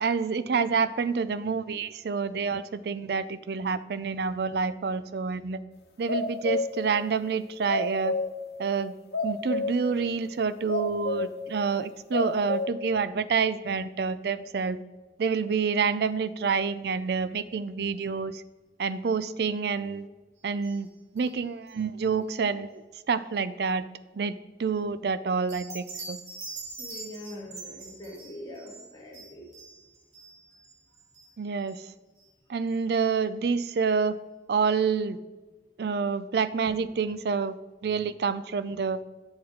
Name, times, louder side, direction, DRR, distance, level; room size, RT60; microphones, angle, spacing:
voice 1, 0.0-5.6 6.0-8.1 8.6-8.9 9.2-14.8 15.2-18.4 18.8-20.1 20.4-20.9 21.1-22.8 23.1-23.8 24.2-26.2 31.4-31.8 32.5-34.2 34.5-35.2 35.8-37.5 37.8-39.0, right 5 dB, 60° right, 14 dB, 0.4 m, -28 dB
sound 1, 6.1-6.8 7.7-8.4 9.1-9.8 10.3-10.4 10.7-11.4 11.8-12.7, left 3 dB, 60° left, 1.3 m, -29 dB
sound 2, 20.6-20.9 21.2-21.4 21.7-21.8 25.5-31.3 31.7-31.8 32.2-32.3 32.7-32.8, right 3 dB, 40° right, 3.4 m, -43 dB
voice 2, 26.8-29.4, left 1 dB, 20° left, -4 dB, 2.3 m, -43 dB
9.4 x 6.9 x 5.0 m, 1.2 s
head